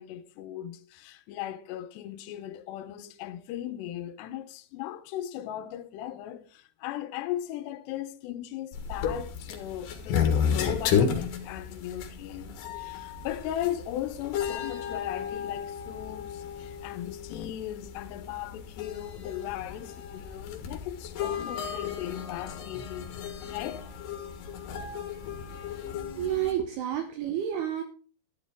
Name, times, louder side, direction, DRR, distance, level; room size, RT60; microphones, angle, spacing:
voice 1, 0.0-23.1 23.5-23.9, left 12 dB, 75° left, 2.9 m, -37 dB
sound 1, 8.7-26.5, left 7 dB, 60° left, 2.6 m, -33 dB
voice 2, 26.2-27.8, right 10 dB, 75° right, 2.6 m, -30 dB
12.0 x 11.5 x 3.6 m
omnidirectional pair, 5.2 m